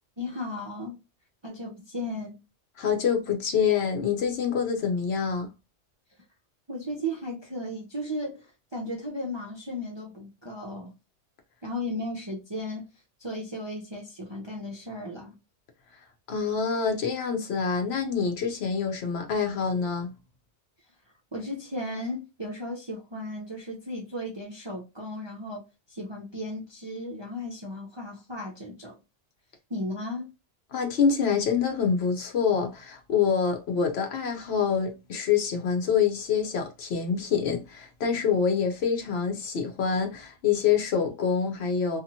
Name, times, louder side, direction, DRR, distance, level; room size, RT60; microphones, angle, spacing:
voice 1, 0.2-1.0 1.4-2.4 6.7-10.9 11.6-12.8 13.2-15.4 21.3-25.6 25.9-29.0 29.7-30.3, left 1 dB, 35° right, 0.4 m, -35 dB
voice 2, 2.8-5.5 16.3-20.1 30.7-42.0, left 6 dB, 65° left, 0.9 m, -26 dB
2.8 x 2.4 x 2.6 m
omnidirectional pair, 1.2 m